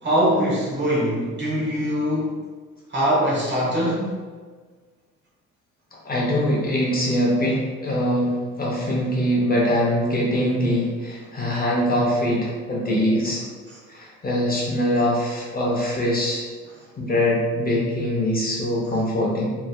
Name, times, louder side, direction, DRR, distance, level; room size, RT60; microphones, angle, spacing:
voice 1, 0.0-2.4 2.9-4.1, equal, 40° right, -5 dB, 1.1 m, -22 dB
voice 2, 6.0-13.4 13.9-16.4 17.0-19.6, equal, 30° left, -4 dB, 0.7 m, -23 dB
3.1 x 2.5 x 2.3 m, 1.5 s
cardioid pair, 90°, 30 cm